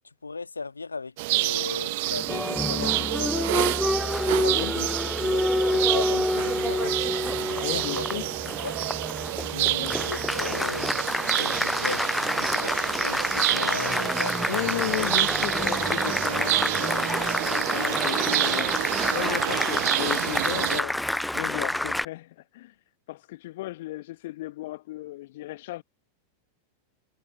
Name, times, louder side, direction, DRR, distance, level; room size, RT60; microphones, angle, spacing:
voice 1, 0.2-3.5 4.3-4.9 5.2-8.1 8.6-8.8 9.5-11.0 11.3-12.1 12.3-14.4, left 4 dB, 80° left, 1.5 m, -37 dB
sound 1, 1.2-20.8, right 22 dB, 50° right, 0.6 m, -29 dB
Applause, 2.1-22.1, left 1 dB, 5° left, 0.3 m, -28 dB
voice 2, 7.6-8.3 9.8-10.0 14.5-17.1 17.5-18.7 19.1-21.0 21.3-22.7 23.1-25.8, left 17 dB, 55° left, 1.0 m, -34 dB
figure-of-eight pair, 90°, 0 cm